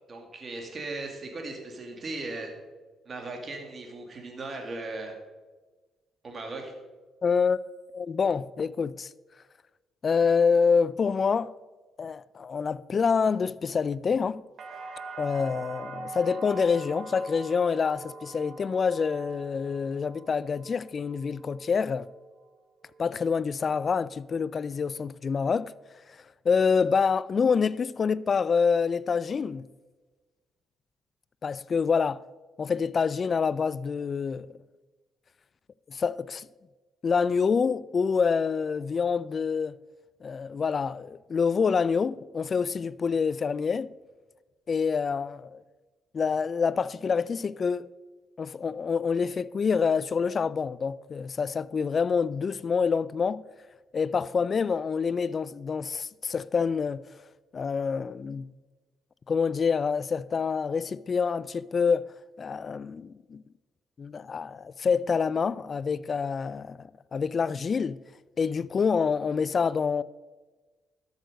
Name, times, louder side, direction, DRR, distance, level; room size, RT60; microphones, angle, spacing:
voice 1, 0.1-2.6 3.1-5.2 6.2-6.7, right 2 dB, 40° right, 2.2 m, -37 dB
voice 2, 7.2-7.6 7.9-9.1 10.0-11.5 12.0-14.4 15.2-22.1 23.0-25.7 26.5-29.7 31.4-32.2 32.6-34.5 35.9-36.5 37.0-39.8 40.2-43.9 44.7-45.6 46.1-47.9 48.4-53.4 53.9-57.0 57.5-58.5 59.3-62.1 62.4-63.4 64.0-68.0 68.4-70.0, left 5 dB, 45° left, 0.3 m, -27 dB
sound 1, 14.6-22.5 22.8-23.5, right 3 dB, 60° right, 1.1 m, -43 dB
13.0 x 6.5 x 5.2 m
cardioid pair, 90°, 0 cm